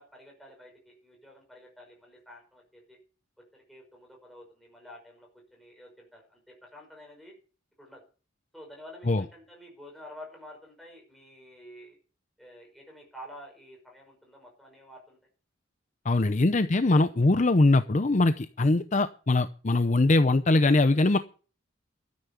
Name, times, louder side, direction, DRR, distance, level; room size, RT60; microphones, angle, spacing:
voice 1, 0.0-3.0 3.5-7.3 7.8-8.0 8.5-12.0 12.4-15.2, equal, ahead, 0 dB, 5.6 m, -50 dB
voice 2, 16.1-21.2, left 2 dB, 35° left, 11 dB, 0.6 m, -22 dB
13.0 x 9.6 x 7.0 m, 0.37 s
head